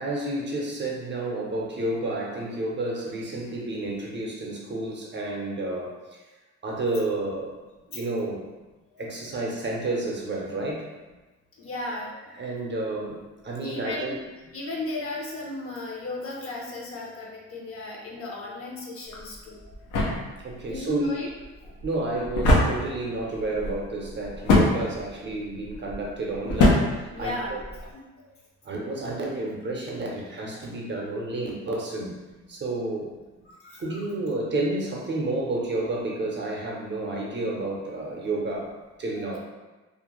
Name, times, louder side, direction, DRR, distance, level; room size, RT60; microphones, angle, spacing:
voice 1, 0.0-6.2 6.6-7.6 7.9-8.5 9.0-10.9 12.3-14.2 20.4-21.2 21.8-27.6 28.6-32.2 32.5-33.1 33.8-39.4, right 2 dB, 40° right, -2 dB, 0.6 m, -30 dB
voice 2, 11.6-12.2 13.6-14.1 14.5-19.7 20.7-21.3 22.8-23.1 24.2-24.3 27.1-27.6 33.6-34.0 39.2-39.4, left 2 dB, 50° left, -2 dB, 0.7 m, -35 dB
sound 1, 19.1-27.9, left 2 dB, 90° left, 0.7 m, -26 dB
2.5 x 2.1 x 3.0 m, 1.2 s
cardioid pair, 90°, 30 cm